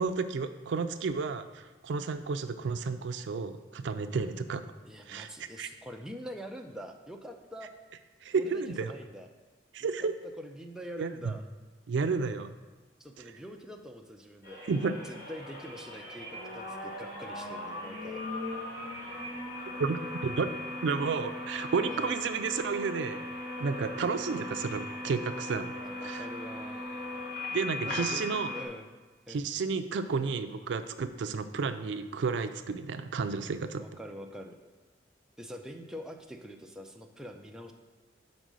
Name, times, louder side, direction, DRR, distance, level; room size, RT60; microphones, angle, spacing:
voice 1, 0.0-4.6 5.1-5.3 5.6-5.7 8.2-8.9 9.7-10.1 11.0-11.3 11.9-12.5 14.7-14.9 19.8-20.5 20.8-23.2 23.6-25.7 26.0-26.3 27.5-28.5 29.3-33.8, right 5 dB, 70° right, 9 dB, 0.4 m, -31 dB
voice 2, 4.8-7.7 8.3-9.3 9.8-10.1 10.4-11.4 13.0-14.6 15.0-18.2 21.9-22.1 25.7-26.8 27.8-28.2 28.5-29.0 29.3-29.4 33.8-34.6 35.4-37.7, equal, 5° right, 2 dB, 0.5 m, -44 dB
sound 1, 14.4-28.6, left 2 dB, 60° left, 1.4 m, -38 dB
5.2 x 4.5 x 6.1 m, 1.3 s
head